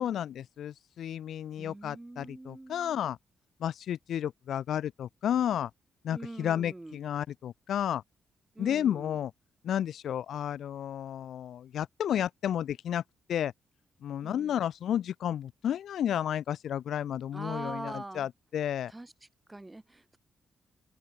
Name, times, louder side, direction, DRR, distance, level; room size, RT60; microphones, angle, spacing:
voice 1, 0.0-3.2 3.6-5.7 6.0-8.0 8.6-9.3 9.6-13.0 13.3-13.5 14.0-18.9, left 10 dB, 75° left, 0.5 m, -32 dB
voice 2, 1.6-3.1 6.1-7.0 8.5-9.2 14.2-14.6 17.3-18.3 18.9-19.1 19.5-20.2, right 2 dB, 20° right, 2.3 m, -43 dB
supercardioid pair, 55°, 0 cm